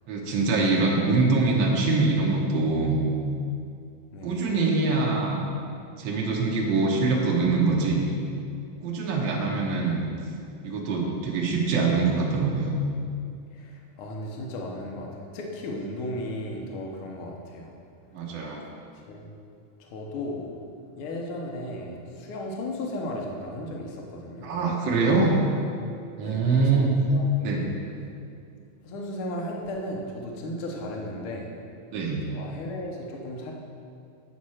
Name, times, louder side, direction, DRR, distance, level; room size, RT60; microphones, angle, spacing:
voice 1, 0.1-3.0 4.2-5.4 6.0-8.1 8.8-10.0 10.6-12.7 18.1-18.6 24.4-25.3 26.2-26.9 27.4-27.7 31.9-32.2, right 3 dB, 75° right, -2 dB, 1.1 m, -24 dB
voice 2, 13.5-17.7 19.1-19.3 19.8-20.4 21.0-25.0 26.2-27.8 28.8-31.5 32.3-33.5, left 1 dB, 75° left, 0 dB, 1.2 m, -35 dB
8.4 x 4.3 x 6.3 m, 2.4 s
omnidirectional pair, 3.7 m